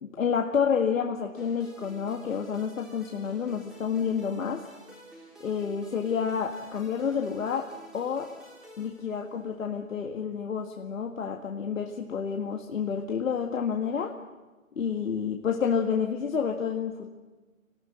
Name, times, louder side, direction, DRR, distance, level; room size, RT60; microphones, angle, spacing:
voice 1, 0.0-4.7 5.4-8.3 8.8-14.2 14.8-17.1, left 6 dB, 70° left, 3 dB, 1.9 m, -29 dB
sound 1, 1.4-9.6, equal, ahead, 3.7 m, -51 dB
27.0 x 19.0 x 7.8 m, 1.2 s
hypercardioid pair, 150°, 41 cm